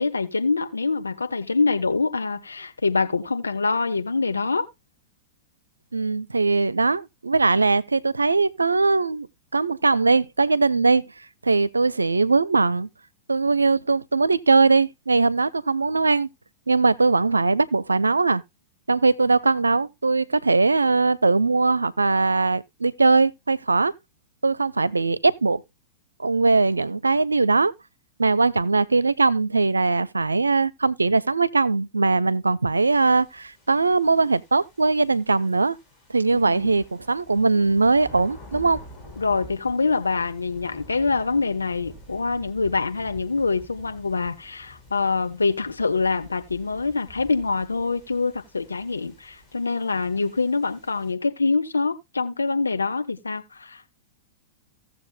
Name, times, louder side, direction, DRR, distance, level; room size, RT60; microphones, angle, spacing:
voice 1, 0.0-4.7 36.3-36.7 39.2-53.8, left 4 dB, 85° left, 1.1 m, -25 dB
voice 2, 5.9-9.3 9.5-11.0 11.4-12.9 13.3-16.3 16.7-18.4 18.9-23.9 24.4-25.6 26.2-27.7 28.2-35.8 36.1-38.8, right 3 dB, 85° right, 0.5 m, -20 dB
sound 1, 32.7-51.1, left 1 dB, 20° left, 4.9 m, -48 dB
17.0 x 7.1 x 2.3 m
figure-of-eight pair, 100°, 0 cm